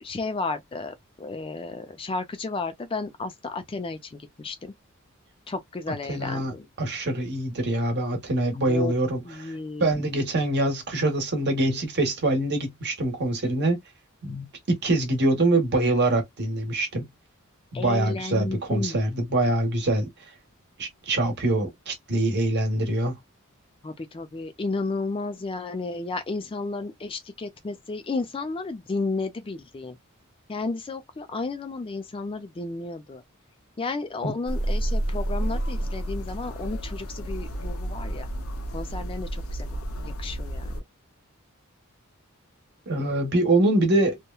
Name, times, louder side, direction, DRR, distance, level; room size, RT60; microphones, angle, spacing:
voice 1, 0.0-4.7 5.5-6.7 8.7-8.9 9.2-10.1 17.7-19.0 23.8-30.0 30.5-33.2 33.8-38.3 38.7-39.8 40.1-40.8, left 3 dB, 25° left, 0.4 m, -33 dB
voice 2, 6.1-6.5 6.8-13.8 14.2-17.1 17.7-20.1 20.8-23.1 34.2-34.3 42.9-44.2, right 2 dB, 55° right, 1.0 m, -24 dB
sound 1, 34.5-40.8, right 1 dB, 75° left, 0.6 m, -30 dB
2.9 x 2.1 x 2.2 m
head